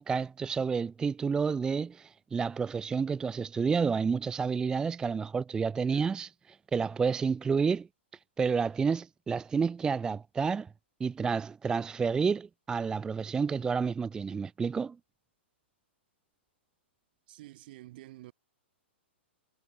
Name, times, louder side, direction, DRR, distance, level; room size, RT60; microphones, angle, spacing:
voice 1, 0.0-7.9 8.4-10.7 11.0-15.0, right 5 dB, 10° right, 0.3 m, -30 dB
voice 2, 17.3-18.3, right 17 dB, 50° right, 7.3 m, -49 dB
figure-of-eight pair, 115°, 6 cm